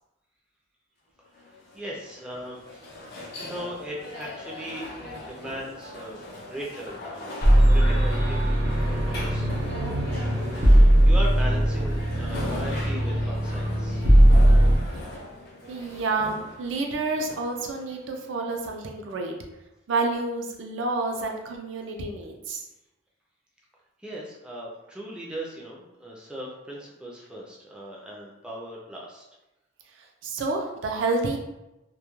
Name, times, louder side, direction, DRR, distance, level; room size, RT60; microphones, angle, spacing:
sound 1, 1.4-18.4, left 1 dB, 55° left, 0.5 m, -39 dB
voice 1, 1.7-2.8 3.4-7.3 7.7-9.5 10.5-14.0 24.0-29.2, equal, 5° right, -4 dB, 0.3 m, -38 dB
sound 2, 7.4-14.8, right 1 dB, 55° right, 0.8 m, -19 dB
voice 2, 15.7-19.3 19.9-22.6 30.0-31.4, right 3 dB, 70° right, 2 dB, 0.4 m, -29 dB
2.2 x 2.1 x 2.9 m, 0.96 s
head